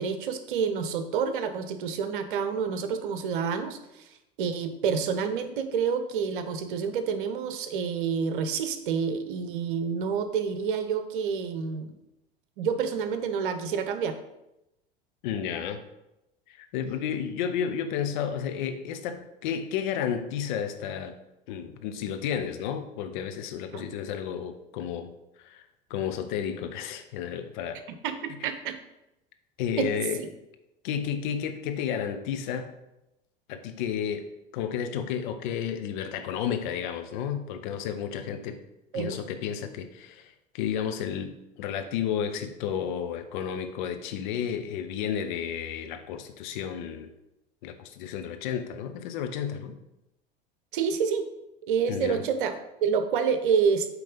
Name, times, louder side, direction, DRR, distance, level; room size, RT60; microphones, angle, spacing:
voice 1, 0.0-4.0 4.4-12.0 12.6-14.2 23.7-23.9 28.0-28.8 29.8-30.3 38.9-39.2 50.7-51.3 51.6-52.6 52.8-53.9, right 6 dB, 60° right, 9 dB, 0.8 m, -28 dB
voice 2, 15.2-15.8 16.5-21.1 21.5-25.1 25.4-25.6 25.9-27.8 28.4-28.5 29.6-30.2 30.8-32.7 33.5-34.3 34.5-38.6 38.9-47.1 47.6-49.8 51.9-52.2, left 8 dB, 55° left, 8 dB, 0.8 m, -32 dB
8.5 x 3.3 x 5.2 m, 0.90 s
figure-of-eight pair, 75°, 29 cm